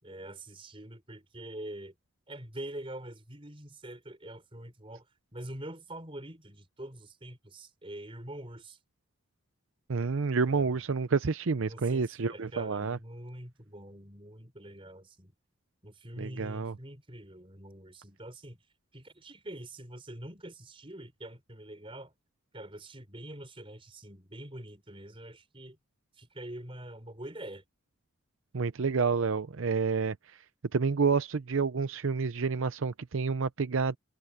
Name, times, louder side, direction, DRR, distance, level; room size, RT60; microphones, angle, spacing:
voice 1, 0.0-1.9 2.3-5.1 5.3-8.8 10.5-10.8 11.6-15.3 15.8-18.6 18.9-22.1 22.5-25.8 26.2-27.6, right 1 dB, 25° right, 4.5 m, -45 dB
voice 2, 9.9-13.0 16.2-16.7 28.5-30.2 30.7-34.0, right 5 dB, 70° right, 0.6 m, -29 dB
head